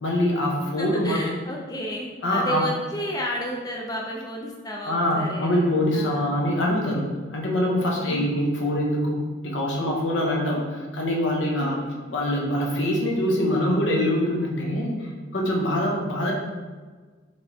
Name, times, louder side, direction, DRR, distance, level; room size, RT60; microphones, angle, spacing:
voice 1, 0.0-1.2 2.2-2.6 4.9-11.8 12.1-16.3, left 1 dB, 75° left, -2 dB, 0.8 m, -24 dB
voice 2, 0.8-5.6 5.9-6.4 7.8-8.3 11.6-12.0, equal, 20° left, -1 dB, 0.4 m, -32 dB
4.4 x 3.2 x 2.7 m, 1.4 s
head